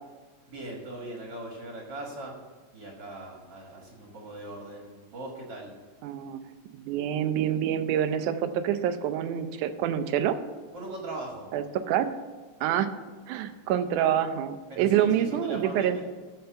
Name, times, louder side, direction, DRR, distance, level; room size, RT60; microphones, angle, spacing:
voice 1, 0.5-2.4 2.7-5.7 10.7-11.5 14.7-16.1, right 2 dB, 45° right, -1 dB, 1.8 m, -40 dB
voice 2, 6.0-6.4 6.8-10.4 11.5-12.1 12.6-12.9 13.3-16.1, right 10 dB, 90° right, 10 dB, 2.2 m, -26 dB
13.5 x 4.5 x 6.9 m, 1.4 s
omnidirectional pair, 3.4 m